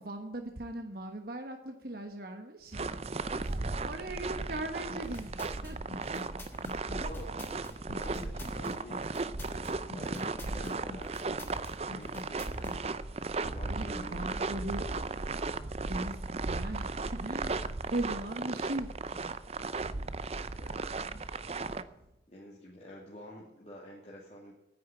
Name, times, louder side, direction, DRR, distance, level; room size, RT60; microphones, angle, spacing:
voice 1, 0.0-2.9 3.3-5.8 7.5-7.8 13.7-14.9 15.7-19.4 21.2-21.3 21.7-22.1, right 1 dB, 55° right, 5 dB, 1.2 m, -39 dB
sound 1, 2.7-21.8, right 3 dB, 35° right, 0.6 m, -36 dB
sound 2, 4.9-12.8, left 1 dB, 15° left, 3.4 m, -45 dB
voice 2, 6.9-7.3 7.9-9.1 9.4-11.3 11.9-12.8 13.5-14.2 20.5-20.9 22.3-24.5, left 1 dB, 35° left, -4 dB, 2.5 m, -48 dB
9.6 x 9.5 x 8.8 m, 0.91 s
head